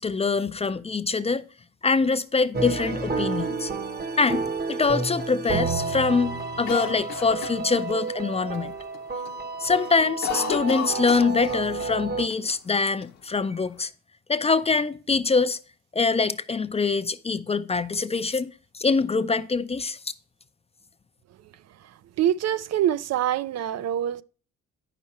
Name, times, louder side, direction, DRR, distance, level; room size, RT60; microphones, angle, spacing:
voice 1, 0.0-1.4 1.8-3.7 4.2-8.7 9.6-13.9 14.3-15.6 15.9-20.0, left 4 dB, 20° left, 0.4 m, -24 dB
sound 1, 2.5-12.3, right 4 dB, 30° right, 1.0 m, -30 dB
Cough, 6.7-8.2 8.5-8.6 8.9-9.4 9.6-11.9 12.2-12.3 13.0-13.8, left 10 dB, 60° left, 0.9 m, -34 dB
voice 2, 22.2-24.2, right 11 dB, 60° right, 0.5 m, -25 dB
9.1 x 6.0 x 4.2 m
cardioid pair, 90°, 30 cm